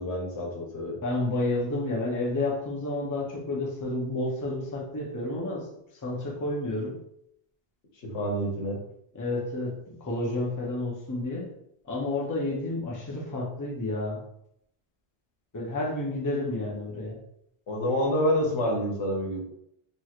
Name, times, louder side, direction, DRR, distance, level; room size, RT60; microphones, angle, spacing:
voice 1, 0.0-1.0 8.0-8.8 17.7-19.4, equal, 90° left, -2 dB, 1.2 m, -28 dB
voice 2, 1.0-5.7 6.0-7.0 9.1-11.5 11.8-14.2 15.5-17.2, left 2 dB, 25° left, -2 dB, 0.5 m, -30 dB
3.0 x 2.9 x 2.4 m, 0.75 s
omnidirectional pair, 1.1 m